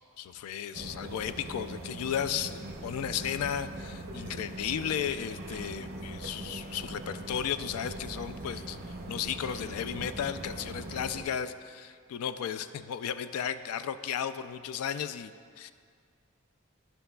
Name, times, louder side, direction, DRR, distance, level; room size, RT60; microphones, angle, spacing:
voice 1, 0.2-15.3 15.6-15.7, left 8 dB, 90° left, 11 dB, 0.3 m, -34 dB
sound 1, 0.7-11.3, right 1 dB, 45° right, 0.6 m, -41 dB
13.5 x 5.7 x 2.3 m, 2.1 s
head